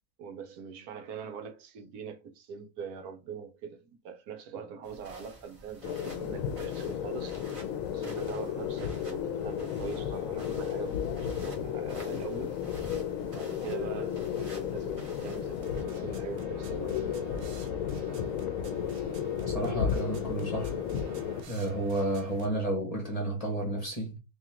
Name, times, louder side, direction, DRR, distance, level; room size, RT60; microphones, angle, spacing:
voice 1, 0.2-7.5 7.9-12.6 13.3-17.0, right 6 dB, 80° right, 1.2 m, -43 dB
sound 1, 4.8-15.8, right 2 dB, 25° right, 0.9 m, -51 dB
sound 2, 5.8-21.4, left 8 dB, 70° left, 0.9 m, -33 dB
sound 3, 15.6-22.5, right 3 dB, 55° right, 0.7 m, -49 dB
voice 2, 19.4-20.8 21.5-24.2, right 1 dB, 30° left, 0.9 m, -31 dB
3.6 x 2.9 x 2.8 m
omnidirectional pair, 1.6 m